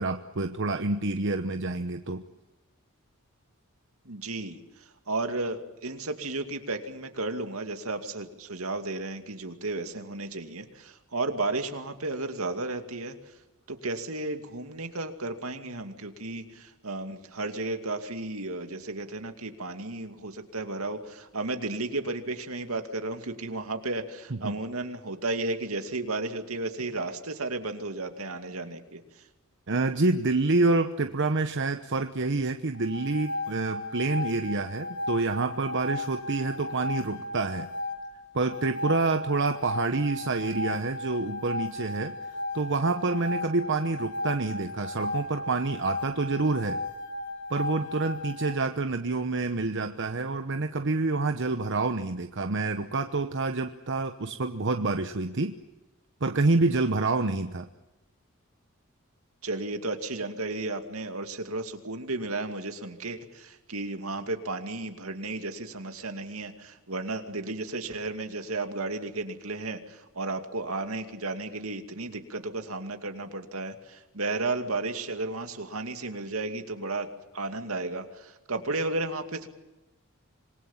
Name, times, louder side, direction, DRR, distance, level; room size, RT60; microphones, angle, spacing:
voice 1, 0.0-2.2 24.4-24.6 29.7-37.7 38.3-42.1 42.5-46.8 47.5-55.5 56.2-57.7, right 3 dB, 60° right, 7 dB, 1.0 m, -27 dB
voice 2, 4.0-13.3 13.7-29.2 59.4-79.5, right 2 dB, 75° right, 7 dB, 2.5 m, -33 dB
sound 1, 32.7-48.6, left 2 dB, 55° left, 1.7 m, -35 dB
26.5 x 20.5 x 7.3 m, 1.0 s
head